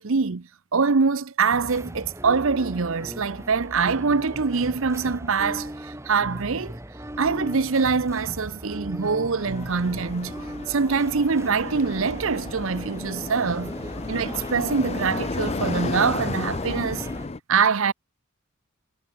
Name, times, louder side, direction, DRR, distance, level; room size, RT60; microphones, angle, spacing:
voice 1, 0.0-6.8 7.2-10.3 10.7-13.7 14.1-17.1 17.5-17.9, right 5 dB, 65° right, 0.7 m, -24 dB
sound 1, 1.5-17.3, right 1 dB, 15° right, 2.4 m, -38 dB
sound 2, 9.4-17.4, left 3 dB, 30° left, 0.5 m, -33 dB
head